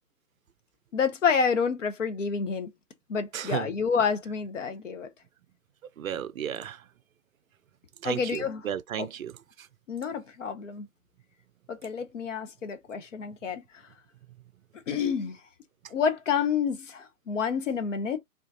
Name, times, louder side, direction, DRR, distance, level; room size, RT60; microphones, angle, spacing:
voice 1, 0.9-2.7 3.1-5.1 8.0-8.6 9.0-9.1 9.9-10.9 11.7-13.6 14.9-15.4 15.9-18.2, left 6 dB, 55° left, 0.8 m, -28 dB
voice 2, 3.3-3.7 6.0-6.8 8.0-9.3, right 10 dB, 65° right, 0.5 m, -33 dB
3.7 x 2.4 x 2.6 m
figure-of-eight pair, 140°, 46 cm